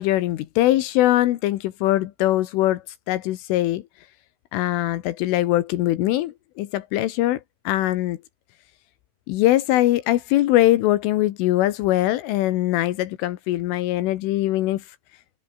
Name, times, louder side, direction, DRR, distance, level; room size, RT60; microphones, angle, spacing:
voice 1, 0.0-2.8 3.1-3.8 4.5-7.4 7.7-8.2 9.3-14.8, left 15 dB, 80° left, 3.6 m, -21 dB
omnidirectional pair, 5.8 m